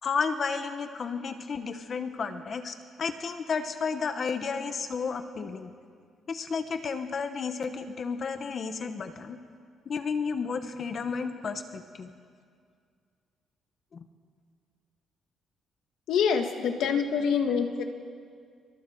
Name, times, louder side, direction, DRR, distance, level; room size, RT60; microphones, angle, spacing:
voice 1, 0.0-5.7 6.3-9.4 9.8-12.1 13.9-14.0, left 5 dB, 40° left, 8 dB, 1.1 m, -32 dB
voice 2, 16.1-17.8, left 6 dB, 80° left, 5 dB, 2.0 m, -26 dB
29.5 x 25.0 x 4.7 m, 2.1 s
cardioid pair, 160°, 0 cm